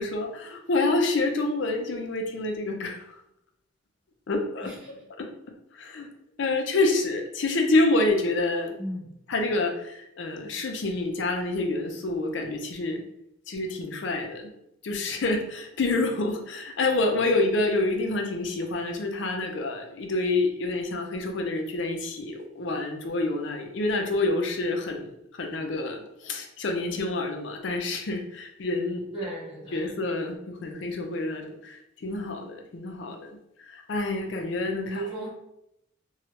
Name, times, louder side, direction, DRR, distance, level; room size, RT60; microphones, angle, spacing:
voice 1, 0.0-3.0 4.3-5.3 5.7-6.1 6.4-8.8 9.3-13.0 13.5-14.5 14.8-25.1 25.4-29.0 29.7-33.3 33.7-35.1, left 2 dB, 60° left, 4 dB, 0.5 m, -27 dB
voice 2, 8.8-9.1 29.1-29.8 34.8-35.3, right 1 dB, 25° right, -12 dB, 1.1 m, -35 dB
3.1 x 2.3 x 2.8 m, 0.82 s
head